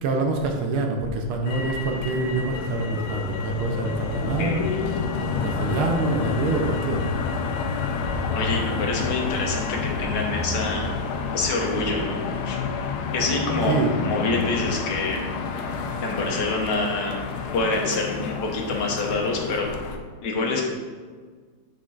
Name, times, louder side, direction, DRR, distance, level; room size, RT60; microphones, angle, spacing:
voice 1, 0.0-4.6 5.0-7.1 13.7-13.9, right 3 dB, 80° right, 3 dB, 1.5 m, -26 dB
Motor vehicle (road), 1.5-20.0, left 5 dB, 90° left, 1.5 m, -29 dB
voice 2, 4.4-4.8 8.3-10.9 11.3-12.6 13.1-13.8 14.0-15.4 16.0-17.2 17.5-19.7 20.2-20.7, left 3 dB, 60° left, 0 dB, 1.5 m, -26 dB
8.3 x 5.2 x 2.5 m, 1.5 s
omnidirectional pair, 2.3 m